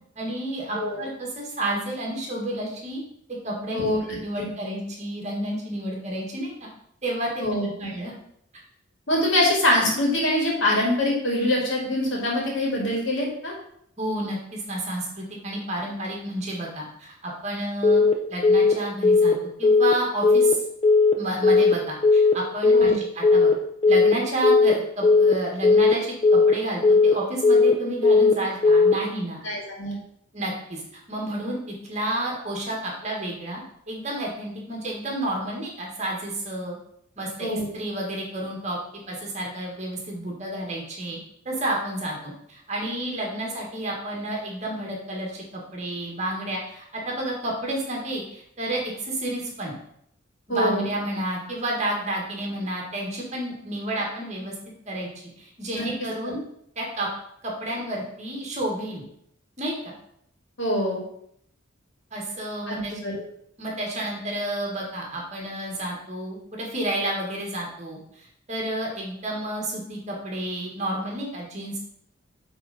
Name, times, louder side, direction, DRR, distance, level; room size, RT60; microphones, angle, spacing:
voice 1, 0.2-3.0 3.3-3.8 4.2-6.7 7.0-7.5 7.8-8.1 14.0-18.0 18.3-20.6 21.2-23.5 23.9-29.4 30.3-30.8 31.1-36.8 37.2-38.8 39.1-41.2 41.5-49.7 50.5-54.5 54.9-56.4 56.8-57.1 57.4-59.0 59.6-59.9 62.1-62.9 63.6-71.8, right 1 dB, 35° right, -2 dB, 1.8 m, -30 dB
voice 2, 3.7-4.5 7.4-7.9 9.1-13.5 22.7-23.0 29.4-30.0 37.4-37.7 50.5-50.9 55.7-55.9 56.2-56.3 60.6-61.0 62.7-63.1, left 1 dB, 65° left, -2 dB, 2.3 m, -24 dB
Telephone, 17.8-18.1 18.4-18.7 19.0-19.3 19.6-19.9 20.2-20.5 20.8-21.1 21.4-21.7 22.0-22.3 22.6-22.9 23.2-23.5 23.8-24.1 24.4-24.7 25.0-25.3 25.6-25.9 26.2-26.5 26.8-27.1 27.4-27.7 28.0-28.3 28.6-28.9, left 4 dB, 30° left, 0.7 m, -16 dB
8.9 x 3.8 x 4.2 m, 0.71 s
head